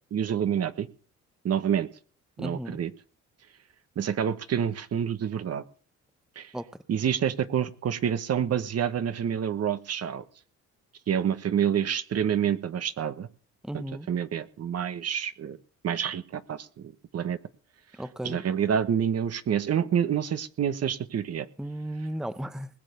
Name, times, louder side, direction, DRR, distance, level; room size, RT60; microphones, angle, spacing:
voice 1, 0.1-0.9 1.4-1.9 2.4-2.9 4.0-5.6 6.4-6.5 6.9-10.2 11.1-13.3 13.7-15.6 15.8-17.4 18.2-21.5, right 8 dB, 55° right, 1.3 m, -28 dB
voice 2, 2.4-2.8 6.5-6.7 13.6-14.1 18.0-18.4 21.6-22.7, right 1 dB, ahead, 0.8 m, -35 dB
20.5 x 7.4 x 6.7 m
cardioid pair, 90°, 30 cm